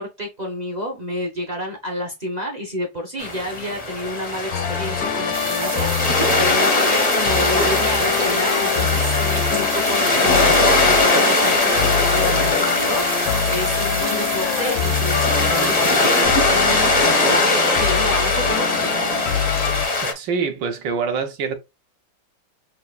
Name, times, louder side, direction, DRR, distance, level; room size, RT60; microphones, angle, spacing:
voice 1, 0.0-16.9 17.4-19.3, equal, 40° right, 0.5 m, -29 dB
sound 1, 3.2-20.1, left 2 dB, 40° left, 0.5 m, -20 dB
sound 2, 4.5-19.9, left 9 dB, 70° left, 1.1 m, -26 dB
sound 3, 5.3-16.3, right 8 dB, 85° right, 1.8 m, -32 dB
voice 2, 20.0-21.6, right 5 dB, 65° right, 1.4 m, -25 dB
6.7 x 2.5 x 2.4 m
omnidirectional pair, 2.3 m